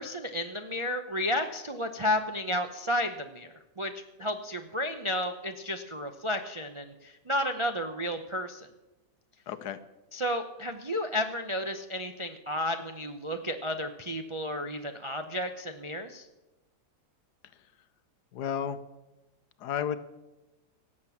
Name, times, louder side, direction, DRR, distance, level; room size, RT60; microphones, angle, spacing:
voice 1, 0.0-3.9 4.2-8.7 10.1-16.3, left 1 dB, 40° right, 5 dB, 0.4 m, -32 dB
voice 2, 9.5-9.8 18.3-18.8 19.6-20.0, left 8 dB, 80° left, 13 dB, 1.3 m, -32 dB
17.0 x 7.4 x 7.2 m, 1.0 s
omnidirectional pair, 1.7 m